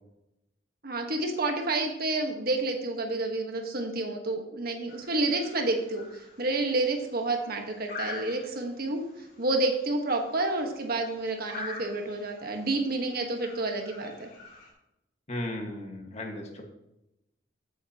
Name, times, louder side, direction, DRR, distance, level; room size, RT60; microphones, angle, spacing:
voice 1, 0.8-6.0 6.4-9.0 9.4-14.3, right 2 dB, 55° right, 3 dB, 1.4 m, -29 dB
sound 1, 4.9-14.7, left 3 dB, 55° left, 3.2 m, -46 dB
voice 2, 15.3-16.6, left 1 dB, 35° left, 2 dB, 1.7 m, -35 dB
14.0 x 8.1 x 2.9 m, 0.89 s
head